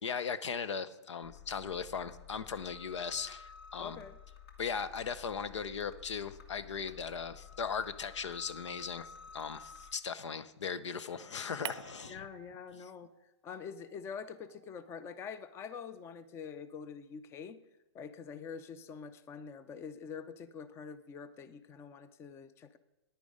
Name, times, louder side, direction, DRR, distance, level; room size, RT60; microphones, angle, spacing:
voice 1, 0.0-4.0 4.6-12.2, left 6 dB, 85° left, 15 dB, 0.8 m, -38 dB
sound 1, 1.2-9.9, left 7 dB, 60° left, 2.1 m, -52 dB
voice 2, 3.8-4.2 12.1-13.1 13.4-17.6 17.9-22.8, left 6 dB, 15° left, 15 dB, 0.5 m, -45 dB
sound 2, 11.6-13.3 13.6-16.1, right 11 dB, 65° right, 0.5 m, -50 dB
10.5 x 9.3 x 5.0 m, 1.0 s
hypercardioid pair, 140°, 15 cm